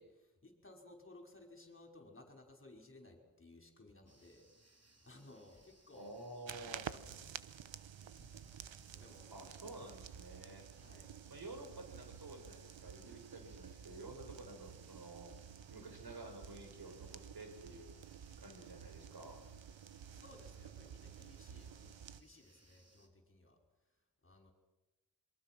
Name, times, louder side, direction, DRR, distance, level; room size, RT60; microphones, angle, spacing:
voice 1, 0.0-6.1 6.5-7.4 8.2-9.4 10.7-11.1 20.1-23.6 24.2-24.5, left 2 dB, 25° left, 3 dB, 5.2 m, -59 dB
sound 1, 4.1-23.1, right 2 dB, 35° right, 3.7 m, -69 dB
voice 2, 5.9-6.8 9.3-10.7 11.3-15.3 15.7-18.0 18.4-19.4, right 2 dB, 55° right, 5 dB, 5.0 m, -51 dB
sound 2, 6.5-22.2, right 8 dB, 80° right, 1.0 m, -52 dB
27.0 x 23.0 x 6.1 m, 1.0 s
cardioid pair, 65°, 44 cm